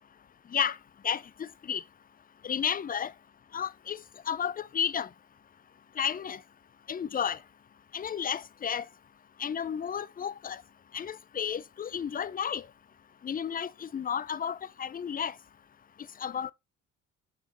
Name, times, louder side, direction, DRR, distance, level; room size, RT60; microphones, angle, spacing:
voice 1, 1.0-1.8 2.4-3.1 3.5-4.0 4.3-5.1 6.0-6.4 6.9-7.4 7.9-8.8 9.4-10.6 10.9-12.6 13.2-15.3 16.2-16.5, left 8 dB, 30° left, 0.5 m, -32 dB
7.1 x 6.3 x 3.1 m
cardioid pair, 90°, 30 cm